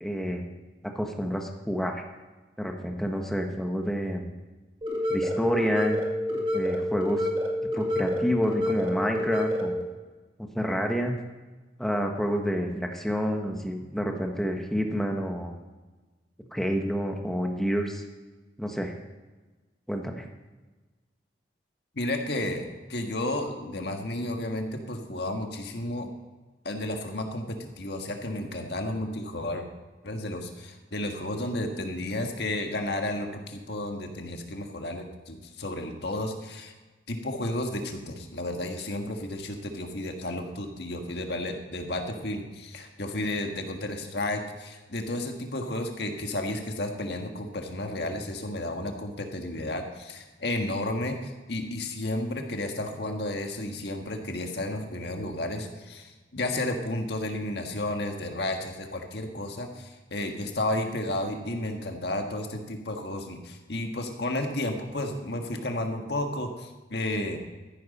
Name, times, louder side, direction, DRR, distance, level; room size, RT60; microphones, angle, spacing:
voice 1, 0.0-0.5 0.9-2.0 2.6-4.3 5.1-6.0 6.5-7.3 7.7-9.8 10.5-11.1 11.8-15.5 16.5-18.0 18.6-18.9 19.9-20.2, equal, ahead, 3 dB, 1.2 m, -28 dB
sound 1, 4.8-9.8, left 1 dB, 30° right, 2.2 m, -28 dB
voice 2, 21.9-26.1 26.6-29.7 30.0-36.7 37.1-67.4, left 1 dB, 70° left, 3 dB, 1.6 m, -32 dB
14.0 x 10.5 x 4.2 m, 1.2 s
head